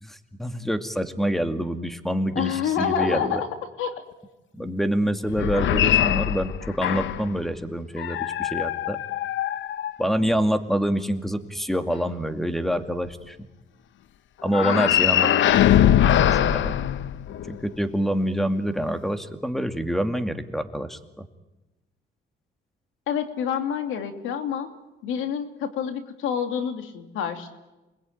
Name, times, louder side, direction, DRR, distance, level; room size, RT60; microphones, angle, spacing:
voice 1, 0.0-3.4 4.6-9.0 10.0-13.5 14.4-15.3 16.3-16.8 17.5-21.3, equal, ahead, 8 dB, 2.3 m, -26 dB
voice 2, 2.3-3.5 3.8-3.9 23.1-24.7 25.0-27.5, left 8 dB, 90° left, 7 dB, 2.8 m, -27 dB
sound 1, 5.3-7.3 8.0-10.4 14.5-17.6, left 11 dB, 70° left, 0.9 m, -22 dB
28.5 x 20.5 x 9.5 m, 1.0 s
cardioid pair, 90°, 20 cm